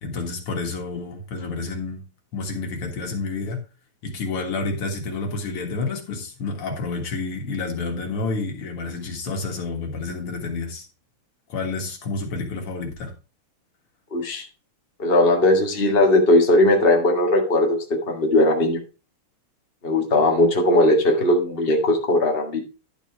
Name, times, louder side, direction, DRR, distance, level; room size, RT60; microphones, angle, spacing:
voice 1, 0.0-2.0 2.3-3.6 4.0-10.9 11.5-13.1, left 3 dB, 80° left, 2.7 m, -29 dB
voice 2, 14.1-14.5 15.0-18.8 19.8-22.6, left 1 dB, 25° left, 1.8 m, -18 dB
11.0 x 5.4 x 4.5 m
omnidirectional pair, 2.4 m